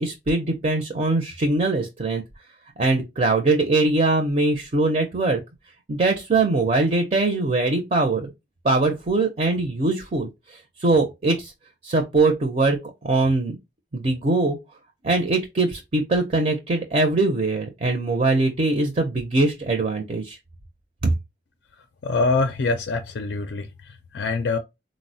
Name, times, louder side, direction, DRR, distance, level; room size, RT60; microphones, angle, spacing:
voice 1, 0.0-2.2 2.8-5.4 5.9-8.3 8.6-10.3 10.8-11.5 11.8-12.8 13.0-13.6 13.9-14.6 15.0-20.4 21.0-21.1, right 2 dB, 35° right, 0.5 m, -22 dB
voice 2, 22.0-23.7 24.1-24.6, left 3 dB, 65° left, 0.4 m, -24 dB
3.8 x 2.0 x 2.6 m
head